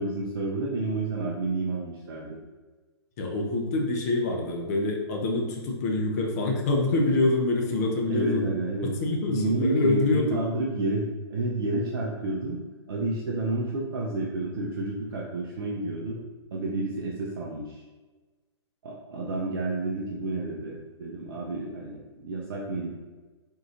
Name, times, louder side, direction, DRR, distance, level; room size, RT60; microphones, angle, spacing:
voice 1, 0.0-2.4 8.1-8.9 9.3-12.6 12.9-16.2 16.5-17.8 18.8-22.9, right 2 dB, 55° right, -2 dB, 0.5 m, -30 dB
voice 2, 3.2-8.4 9.0-10.4, left 2 dB, 35° left, 1 dB, 0.6 m, -25 dB
3.5 x 2.4 x 2.7 m, 1.3 s
figure-of-eight pair, 115°, 14 cm